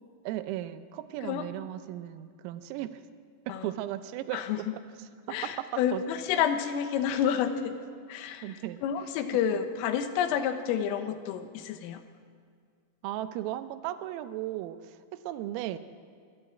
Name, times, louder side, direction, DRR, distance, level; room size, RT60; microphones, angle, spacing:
voice 1, 0.3-3.0 3.5-6.0 6.3-6.4 8.4-8.8 9.5-9.6 13.0-15.8, right 13 dB, 85° right, 10 dB, 3.4 m, -36 dB
voice 2, 5.3-7.8 8.1-8.4 8.8-12.0, left 8 dB, 80° left, 8 dB, 3.6 m, -29 dB
25.5 x 13.5 x 8.9 m, 2.1 s
omnidirectional pair, 6.0 m